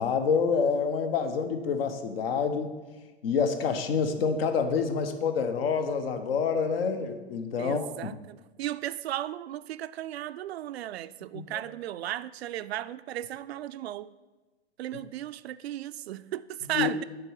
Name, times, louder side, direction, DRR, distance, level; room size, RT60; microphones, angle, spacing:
voice 1, 0.0-2.7 3.2-8.1 11.3-11.4 16.7-16.9, left 6 dB, 60° left, 1.1 m, -27 dB
voice 2, 7.6-14.1 14.8-17.0, right 13 dB, 70° right, 0.5 m, -35 dB
7.6 x 4.8 x 6.4 m
hypercardioid pair, 125°, 33 cm